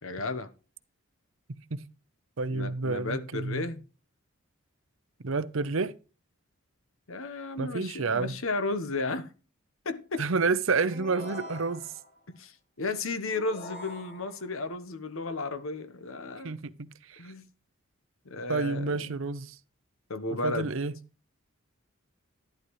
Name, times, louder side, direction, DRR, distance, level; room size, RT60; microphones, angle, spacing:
voice 1, 0.0-0.5 2.5-3.8 7.1-9.3 9.8-10.2 12.3-16.5 17.2-17.4 18.2-19.2 20.1-20.7, left 3 dB, 70° left, 1.0 m, -34 dB
voice 2, 2.4-3.7 5.2-5.9 7.6-8.4 10.2-11.9 16.4-17.3 18.5-19.6 20.3-21.0, right 4 dB, 65° right, 0.7 m, -30 dB
sound 1, 10.9-12.2 13.3-14.6, left 2 dB, 35° left, 3.7 m, -44 dB
11.5 x 11.5 x 3.1 m
head